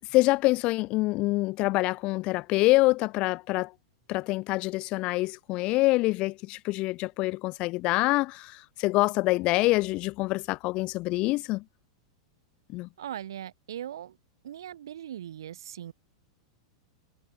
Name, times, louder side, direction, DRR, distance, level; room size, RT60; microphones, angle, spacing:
voice 1, 0.1-3.7 4.1-11.6 12.7-12.9, left 21 dB, 45° left, 0.8 m, -26 dB
voice 2, 13.0-14.2 14.4-15.9, right 11 dB, 75° right, 1.0 m, -39 dB
hypercardioid pair, 105°, 2 cm